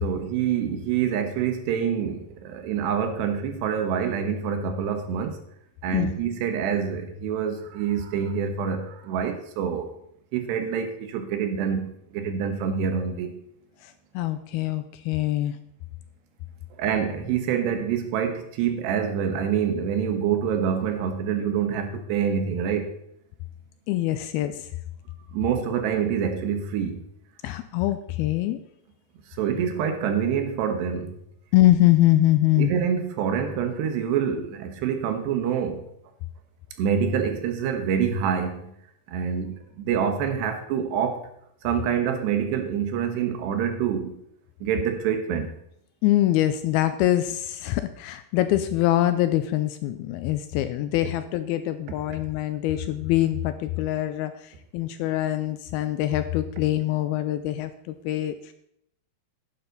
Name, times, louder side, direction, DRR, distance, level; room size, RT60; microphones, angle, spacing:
voice 1, 0.0-5.4 5.8-9.9 10.3-13.3 16.8-22.9 25.3-27.0 29.4-31.1 32.6-35.8 36.8-38.7 39.1-41.3 41.6-44.2 44.6-45.5, right 7 dB, 85° right, 7 dB, 3.4 m, -26 dB
voice 2, 13.8-15.6 23.9-24.7 27.4-28.6 31.5-32.7 46.0-58.5, left 14 dB, 80° left, 10 dB, 2.3 m, -24 dB
11.5 x 9.6 x 4.0 m, 0.72 s
omnidirectional pair, 4.8 m